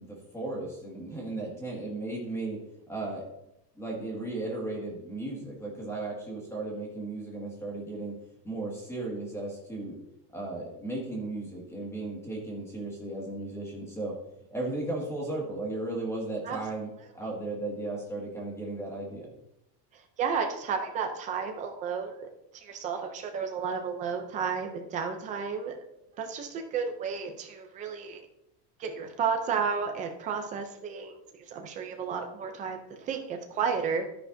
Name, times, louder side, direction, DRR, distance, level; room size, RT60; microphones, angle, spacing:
voice 1, 0.0-2.6 2.9-3.2 3.8-8.1 8.4-10.0 10.3-14.1 14.5-19.3, right 2 dB, 5° left, -2 dB, 1.9 m, -35 dB
voice 2, 20.2-22.3 22.5-25.8 26.2-28.2 28.8-31.2 31.5-34.1, right 6 dB, 15° right, 4 dB, 0.4 m, -32 dB
11.5 x 10.0 x 2.6 m, 0.84 s
cardioid pair, 180°, 50 cm